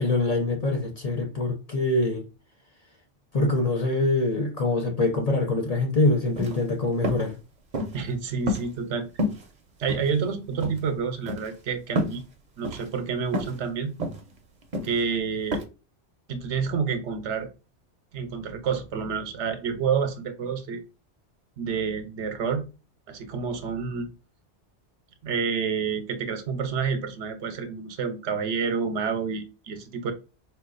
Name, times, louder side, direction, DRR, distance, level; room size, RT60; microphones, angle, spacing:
voice 1, 0.0-2.2 3.3-7.3, left 2 dB, 45° left, 0.6 m, -24 dB
sound 1, 6.3-6.6 7.0-7.3 7.7-8.1 8.5-8.9 9.2-9.4 9.9-10.3 10.6-10.8 11.3-11.5 12.0-12.2 12.6-12.9 13.3-13.6 14.0-14.2 14.7-15.0 15.5-15.6, left 1 dB, 45° right, 0.7 m, -29 dB
voice 2, 7.9-9.1 9.8-12.2 12.6-13.9 14.8-15.6 16.3-17.5 18.1-20.8 21.6-22.7 23.1-24.1 25.2-30.1, right 6 dB, 80° right, 1.0 m, -29 dB
4.3 x 2.3 x 2.4 m
omnidirectional pair, 1.2 m